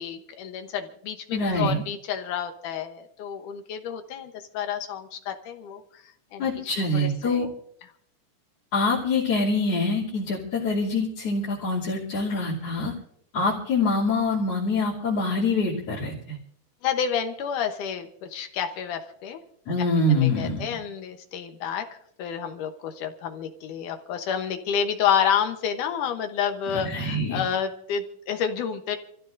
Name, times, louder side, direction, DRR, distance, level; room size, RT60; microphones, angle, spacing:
voice 1, 0.0-6.0 6.3-6.5 7.0-7.5 16.8-19.4 20.2-21.9 22.2-29.0, left 8 dB, 75° left, 6 dB, 2.6 m, -29 dB
voice 2, 1.3-1.8 6.4-7.5 8.7-12.9 13.3-16.4 19.7-20.8 26.7-27.4, left 2 dB, 50° left, -8 dB, 3.8 m, -25 dB
28.5 x 14.5 x 2.6 m, 0.66 s
omnidirectional pair, 3.7 m